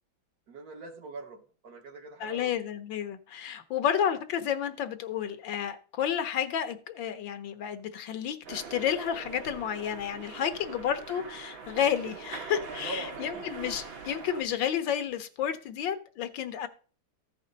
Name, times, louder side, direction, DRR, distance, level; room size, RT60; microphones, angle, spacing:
voice 1, 0.5-2.5 10.7-10.8 12.8-13.5, right 3 dB, 55° right, 1.5 m, -43 dB
voice 2, 2.2-16.7, left 9 dB, 70° left, 1.5 m, -31 dB
sound 1, 8.5-14.4, right 5 dB, 75° right, 2.7 m, -42 dB
14.5 x 5.4 x 3.9 m
omnidirectional pair, 2.2 m